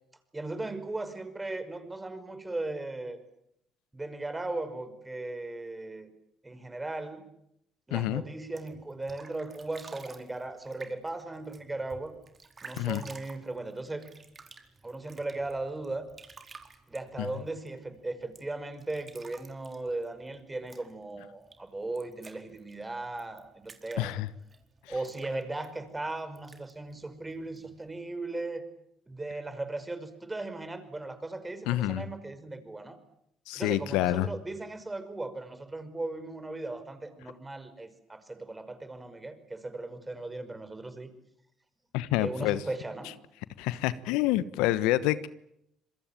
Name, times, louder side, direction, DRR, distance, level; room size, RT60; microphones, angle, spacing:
voice 1, 0.3-3.2 3.9-6.1 6.4-7.3 7.9-12.2 12.6-14.1 14.8-16.1 16.9-24.1 24.9-28.6 29.1-33.0 33.5-41.1 42.2-43.1, right 2 dB, 20° right, 11 dB, 5.5 m, -37 dB
voice 2, 7.9-8.2 12.8-13.0 17.2-17.3 24.0-24.3 31.7-32.1 33.5-34.3 41.9-42.6 43.6-45.3, left 15 dB, 75° left, 16 dB, 1.1 m, -27 dB
sound 1, 8.4-28.0, right 4 dB, 35° right, 4.4 m, -53 dB
26.5 x 23.0 x 9.1 m, 0.77 s
hypercardioid pair, 55°, 0 cm